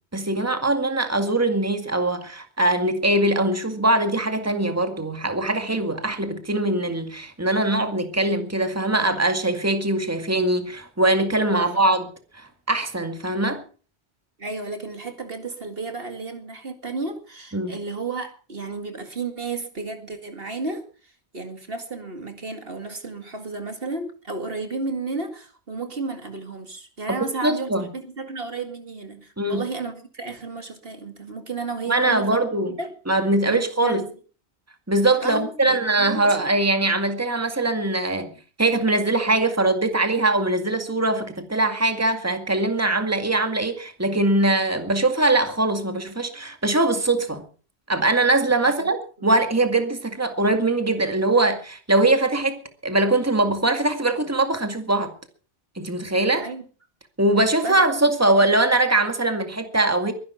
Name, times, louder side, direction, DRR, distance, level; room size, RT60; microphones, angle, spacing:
voice 1, 0.1-12.1 12.3-13.6 17.5-17.7 27.4-27.9 29.4-29.6 31.9-32.7 33.1-34.0 34.9-38.3 38.6-47.4 47.9-55.1 55.8-56.5 57.2-60.1, right 2 dB, 15° right, 2.1 m, -22 dB
voice 2, 14.4-32.4 32.7-32.9 33.5-34.0 35.2-36.3 48.7-48.9 56.3-56.7 57.6-57.8, right 3 dB, 60° right, 2.4 m, -33 dB
22.0 x 11.0 x 5.7 m
omnidirectional pair, 1.1 m